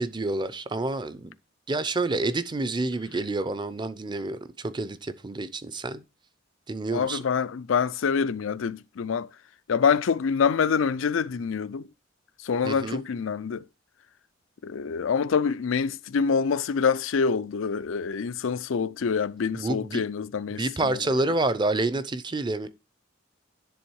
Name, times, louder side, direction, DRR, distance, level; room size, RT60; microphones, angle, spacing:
voice 1, 0.0-1.3 1.7-6.0 6.7-7.2 12.6-13.0 19.5-20.0 20.5-22.7, right 2 dB, 25° right, 0.6 m, -28 dB
voice 2, 6.9-9.3 9.7-11.9 12.4-13.6 14.6-21.0, left 6 dB, 80° left, 0.4 m, -26 dB
10.5 x 3.6 x 4.6 m
head